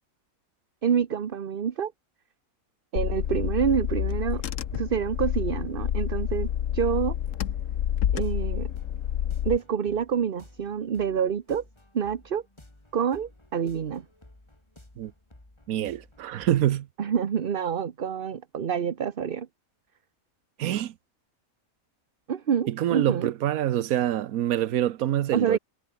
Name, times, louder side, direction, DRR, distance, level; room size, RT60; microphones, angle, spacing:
voice 1, 0.8-1.9 2.9-4.4 4.7-7.2 8.1-8.7 9.4-11.6 11.9-12.4 12.9-14.0 17.0-19.5 22.3-23.3 25.3-25.6, right 7 dB, 45° right, 1.0 m, -27 dB
Car / Engine, 3.0-9.6, left 10 dB, 70° left, 1.2 m, -28 dB
sound 1, 8.0-16.8, left 1 dB, 20° left, 3.0 m, -54 dB
voice 2, 15.7-16.9 20.6-20.9 22.7-25.6, right 12 dB, 90° right, 1.2 m, -25 dB
omnidirectional pair, 1.5 m